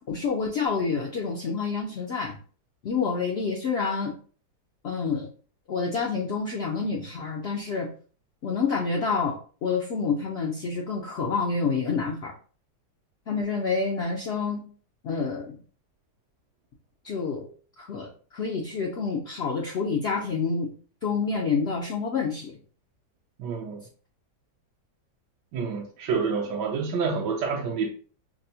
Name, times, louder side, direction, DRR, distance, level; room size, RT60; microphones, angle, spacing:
voice 1, 0.1-2.4 2.8-4.1 4.8-5.3 5.7-7.9 8.4-9.4 9.6-12.3 13.3-14.7 15.0-15.6 17.0-17.4 17.8-20.7 21.0-22.6, left 5 dB, 85° left, 0.5 m, -28 dB
voice 2, 23.4-23.9 25.5-27.9, right 5 dB, 80° right, 1.1 m, -28 dB
5.0 x 2.0 x 2.7 m
omnidirectional pair, 1.8 m